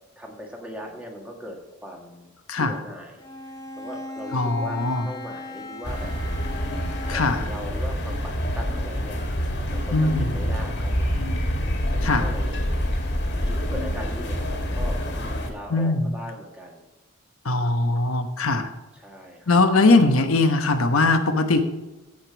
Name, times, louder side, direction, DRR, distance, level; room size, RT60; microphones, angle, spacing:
voice 1, 0.2-2.3 2.6-3.2 3.8-6.1 7.0-9.2 9.7-11.1 11.9-12.6 13.3-16.9 19.0-19.5, equal, 5° right, 0 dB, 1.7 m, -39 dB
Bowed string instrument, 3.2-7.6, left 2 dB, 15° left, 0.8 m, -38 dB
voice 2, 4.3-5.1 7.1-7.4 9.9-10.3 12.0-12.3 15.7-16.1 17.4-18.7 19.5-21.6, left 3 dB, 80° left, 6 dB, 1.0 m, -20 dB
sound 1, 5.8-15.5, equal, 55° left, 2.0 m, -27 dB
sound 2, 6.2-6.4 6.8-7.0 7.8-8.1 8.5-8.6 9.5-9.7 10.1-10.2 11.1-11.3 11.7-11.8 12.7-13.0 13.3-13.4 14.3-14.6 15.0-15.1, right 2 dB, 60° right, 1.7 m, -36 dB
15.0 x 5.2 x 5.1 m, 1.1 s
head